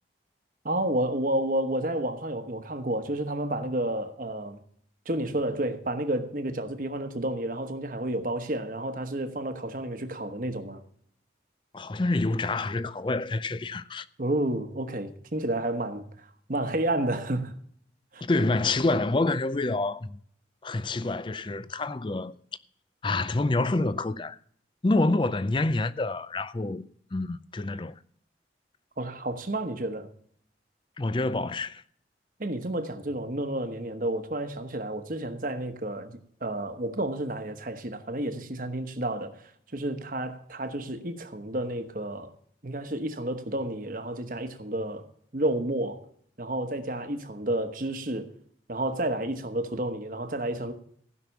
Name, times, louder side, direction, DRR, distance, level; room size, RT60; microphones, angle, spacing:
voice 1, 0.6-4.6 5.0-10.8 14.2-17.5 18.1-18.2 29.0-30.1 32.4-42.3 42.6-45.1 45.3-46.0 46.4-48.3 48.7-50.7, right 1 dB, 50° right, 1.1 m, -31 dB
voice 2, 11.7-14.1 18.2-20.2 20.6-22.3 23.0-24.4 24.8-27.9 31.0-31.8, left 2 dB, 25° left, 0.4 m, -27 dB
15.5 x 5.9 x 7.1 m
head